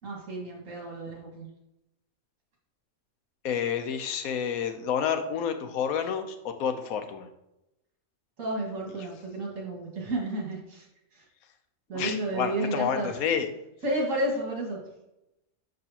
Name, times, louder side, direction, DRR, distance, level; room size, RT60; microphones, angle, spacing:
voice 1, 0.0-1.5 8.4-10.9 11.1-11.2 11.9-13.1 13.8-14.8, right 1 dB, 70° right, -2 dB, 2.1 m, -31 dB
voice 2, 3.4-7.3 11.9-13.5, left 7 dB, 90° left, 7 dB, 1.2 m, -29 dB
6.5 x 6.4 x 2.9 m, 0.89 s
omnidirectional pair, 1.4 m